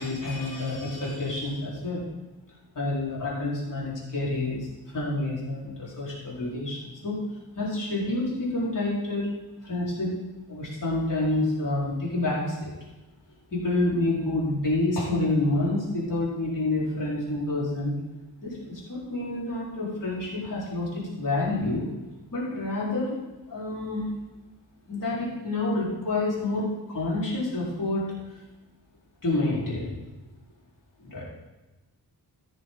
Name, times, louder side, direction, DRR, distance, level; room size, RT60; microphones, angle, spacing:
voice 1, 0.0-2.0 2.7-7.2 7.6-9.3 9.6-10.2 10.5-12.7 13.5-18.0 18.4-21.9 22.3-24.1 24.9-28.4 29.2-29.9 31.0-31.2, left 2 dB, 55° left, -7 dB, 4.0 m, -28 dB
15.5 x 7.6 x 3.8 m, 1.1 s
wide cardioid pair, 180°, 39 cm